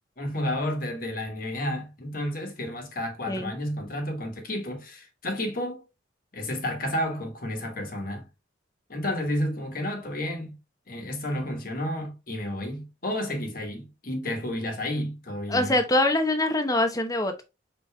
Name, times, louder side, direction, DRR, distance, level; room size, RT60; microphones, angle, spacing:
voice 1, 0.2-5.8 6.3-8.3 8.9-10.5 10.9-15.8, left 1 dB, 50° left, 1.4 m, -31 dB
voice 2, 15.5-17.4, left 1 dB, 20° left, 0.8 m, -24 dB
4.9 x 4.0 x 2.2 m
head